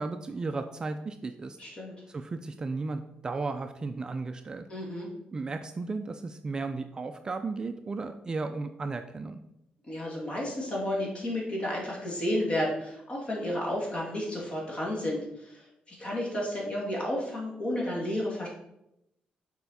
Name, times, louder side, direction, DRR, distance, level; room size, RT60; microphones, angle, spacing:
voice 1, 0.0-1.6 2.1-4.7 5.3-9.4, right 3 dB, 25° right, 8 dB, 0.3 m, -34 dB
voice 2, 1.6-1.9 4.7-5.1 9.9-18.5, left 1 dB, 35° left, -3 dB, 2.2 m, -32 dB
6.8 x 4.3 x 4.1 m, 0.83 s
cardioid pair, 135°, 3 cm